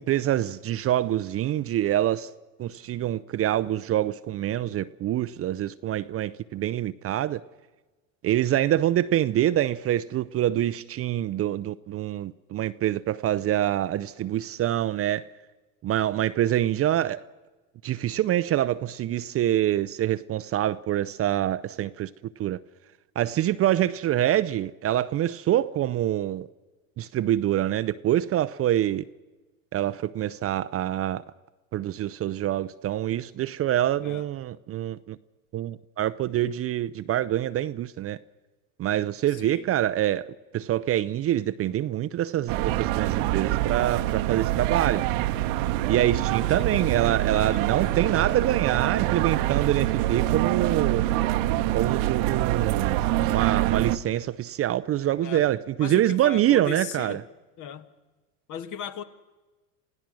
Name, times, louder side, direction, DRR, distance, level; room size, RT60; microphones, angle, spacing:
voice 1, 0.0-2.3 2.6-7.4 8.2-15.2 15.8-17.2 17.8-22.1 22.4-22.6 23.2-26.5 27.0-29.0 29.7-31.2 31.7-35.2 35.5-38.2 38.8-45.0 45.9-51.0 51.7-53.0 53.3-57.2, right 12 dB, 35° right, 0.6 m, -25 dB
voice 2, 39.3-39.7 46.4-47.6 55.2-55.5 55.8-57.2 57.6-57.9 58.5-59.0, left 8 dB, 45° left, 1.5 m, -38 dB
sound 1, 42.5-54.0, right 14 dB, 65° right, 1.0 m, -25 dB
27.5 x 16.0 x 6.3 m
hypercardioid pair, 90°, 41 cm